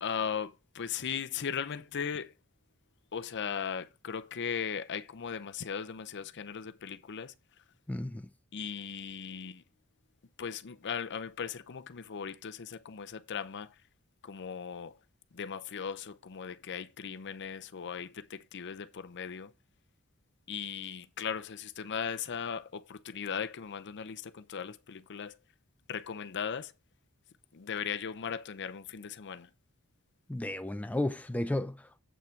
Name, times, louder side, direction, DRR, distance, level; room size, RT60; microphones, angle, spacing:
voice 1, 0.0-2.3 3.1-7.3 8.5-9.6 10.4-13.7 14.2-15.0 15.3-19.5 20.5-25.4 25.9-26.7 27.5-29.5, left 7 dB, 55° left, 0.6 m, -38 dB
voice 2, 7.9-8.3 30.3-32.0, left 1 dB, 5° left, 0.4 m, -33 dB
8.2 x 6.0 x 4.4 m
head